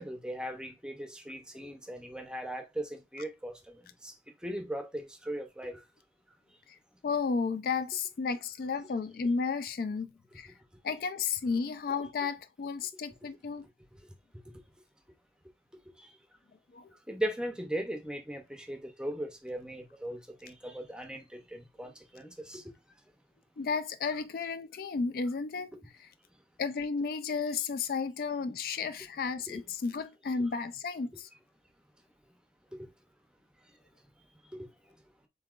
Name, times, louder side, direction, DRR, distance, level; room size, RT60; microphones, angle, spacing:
voice 1, 0.0-4.1 4.4-5.8 17.1-22.6 29.5-29.6 32.8-32.9 34.6-34.7, right 1 dB, 5° right, 0.6 m, -38 dB
voice 2, 7.0-10.5 10.8-13.7 16.7-16.9 21.8-21.9 23.6-25.7 26.0-26.1 26.6-31.3, left 5 dB, 55° left, 0.3 m, -33 dB
7.2 x 2.8 x 2.4 m
head